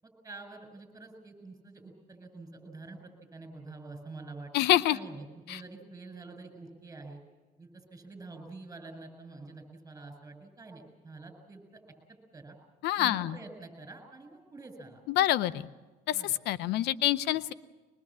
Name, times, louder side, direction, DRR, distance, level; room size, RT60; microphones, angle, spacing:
voice 1, 0.0-3.0 3.3-4.5 4.9-7.2 7.6-11.8 12.1-12.6 13.0-15.0 16.1-16.8, right 3 dB, 20° right, 6 dB, 7.2 m, -47 dB
voice 2, 4.5-5.0 5.5-5.6 12.8-13.4 15.1-15.7 16.1-17.5, left 13 dB, 80° left, 16 dB, 0.7 m, -27 dB
24.0 x 21.5 x 7.5 m, 1.3 s
cardioid pair, 110°, 17 cm